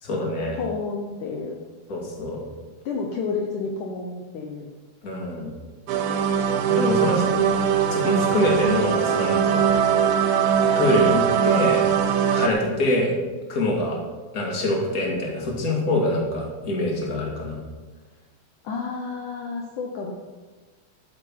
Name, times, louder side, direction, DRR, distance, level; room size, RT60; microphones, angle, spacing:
voice 1, 0.0-0.6 1.9-2.4 5.0-5.5 6.7-7.2 7.9-9.6 10.8-11.8 12.3-13.1 13.5-14.0 14.3-17.6, left 1 dB, 25° left, -1 dB, 2.5 m, -24 dB
voice 2, 0.5-1.6 2.9-4.7 6.9-7.7 12.5-12.7 18.6-20.1, left 4 dB, 65° left, 0 dB, 2.3 m, -30 dB
sound 1, 5.9-12.5, right 8 dB, 85° right, 3.0 m, -21 dB
12.0 x 9.8 x 5.8 m, 1.3 s
omnidirectional pair, 4.3 m